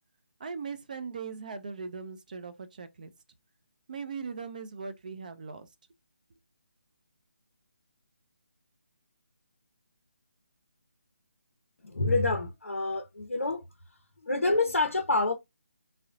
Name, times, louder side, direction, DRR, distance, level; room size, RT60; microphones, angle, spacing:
voice 1, 0.4-3.1 3.9-5.7, right 5 dB, 35° right, 0.4 m, -39 dB
voice 2, 11.8-13.6 14.2-15.3, left 3 dB, 70° left, 0.5 m, -27 dB
3.6 x 2.0 x 2.6 m
figure-of-eight pair, 150°, 7 cm